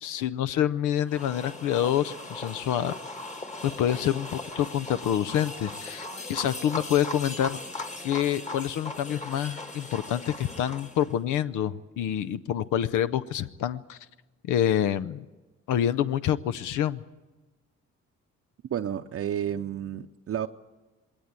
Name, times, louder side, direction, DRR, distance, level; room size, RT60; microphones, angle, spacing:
voice 1, 0.0-2.9 3.6-7.6 8.0-14.0 14.5-15.3 15.7-17.0, left 10 dB, 80° left, 13 dB, 0.7 m, -27 dB
sound 1, 1.1-11.2, left 2 dB, 25° left, 1.7 m, -39 dB
voice 2, 18.7-20.5, right 9 dB, 50° right, 5 dB, 0.7 m, -31 dB
20.5 x 18.0 x 8.9 m, 1.2 s
cardioid pair, 90°, 30 cm